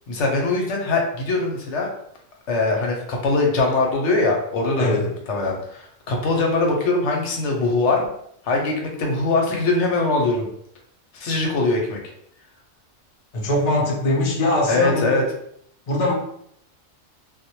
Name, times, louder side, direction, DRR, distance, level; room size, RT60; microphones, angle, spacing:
voice 1, 0.1-1.9 2.5-5.0 5.3-8.1 8.4-10.5 11.1-12.0 14.7-15.2, left 3 dB, 70° left, 1 dB, 0.8 m, -22 dB
voice 2, 4.8-5.1 13.3-15.2 15.9-16.1, left 1 dB, 50° left, -2 dB, 0.5 m, -22 dB
2.1 x 2.1 x 2.9 m, 0.69 s
omnidirectional pair, 1.3 m